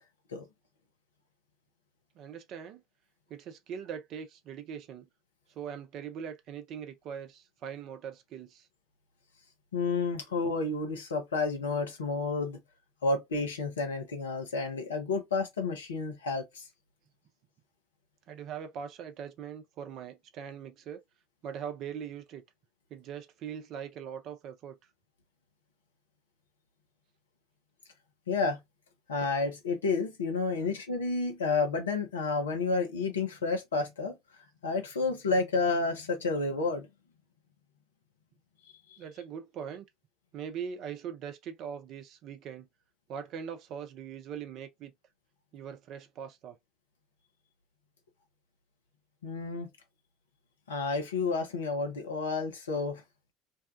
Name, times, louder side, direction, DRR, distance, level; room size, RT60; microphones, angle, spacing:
voice 1, 2.2-2.8 3.3-5.1 5.5-8.7 10.3-10.4 18.3-21.0 21.4-22.4 22.9-24.8 30.6-30.7 39.0-39.9 40.3-42.7 43.1-44.9 45.5-46.6, right 8 dB, 50° right, 0.6 m, -41 dB
voice 2, 9.7-12.6 13.0-16.7 28.3-28.6 29.1-34.2 34.6-36.9 49.2-49.7 50.7-53.0, left 3 dB, 75° left, 0.7 m, -30 dB
2.7 x 2.2 x 2.4 m
figure-of-eight pair, 60°, 0 cm